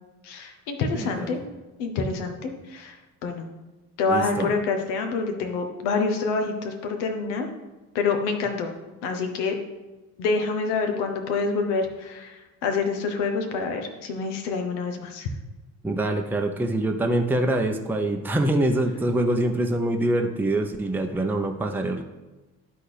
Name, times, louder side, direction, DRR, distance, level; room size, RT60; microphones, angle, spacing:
voice 1, 0.2-1.4 1.8-3.0 3.2-3.5 4.0-7.5 7.9-8.7 9.0-9.6 10.2-15.3, left 4 dB, 65° left, 5 dB, 1.1 m, -27 dB
voice 2, 0.9-1.4 4.1-4.5 15.8-22.0, right 1 dB, 5° right, 3 dB, 0.8 m, -25 dB
12.0 x 4.3 x 3.3 m, 1.1 s
figure-of-eight pair, 50°, 43 cm